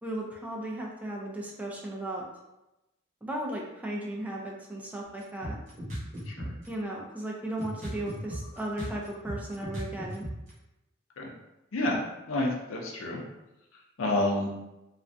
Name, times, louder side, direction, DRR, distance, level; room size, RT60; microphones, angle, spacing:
voice 1, 0.0-2.2 3.2-5.6 6.7-10.3, right 1 dB, 10° right, -2 dB, 0.3 m, -36 dB
sound 1, 5.2-6.7 7.1-7.2 7.6-10.5, right 1 dB, 40° right, 0.9 m, -36 dB
voice 2, 12.3-13.2 14.0-14.5, left 1 dB, 90° left, -1 dB, 0.5 m, -29 dB
2.4 x 2.1 x 2.5 m, 0.96 s
head